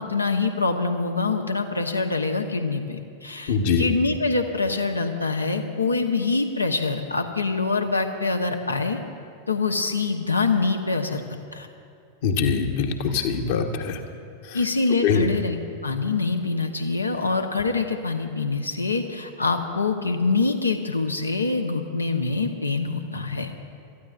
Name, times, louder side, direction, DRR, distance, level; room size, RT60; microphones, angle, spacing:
voice 1, 0.0-9.0 9.5-11.2 11.5-11.7 14.5-15.6 15.8-23.5, left 3 dB, 80° left, 5 dB, 1.0 m, -25 dB
voice 2, 3.5-3.9 12.2-14.0 14.5-14.6 15.0-15.3, left 6 dB, 50° left, 4 dB, 1.2 m, -23 dB
27.5 x 14.0 x 2.5 m, 2.5 s
figure-of-eight pair, 90°, 0 cm